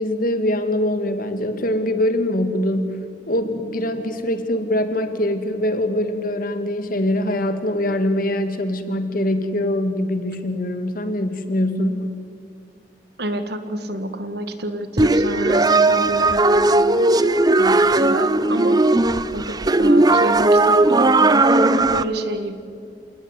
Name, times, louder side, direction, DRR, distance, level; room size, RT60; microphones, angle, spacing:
voice 1, 0.0-2.9 3.3-12.1, left 1 dB, 50° left, 8 dB, 2.2 m, -23 dB
voice 2, 13.2-19.0 19.3-22.6, right 1 dB, 65° right, 9 dB, 2.0 m, -28 dB
sound 1, 15.0-22.0, right 2 dB, 25° right, 0.7 m, -17 dB
27.5 x 19.0 x 9.9 m, 2.4 s
head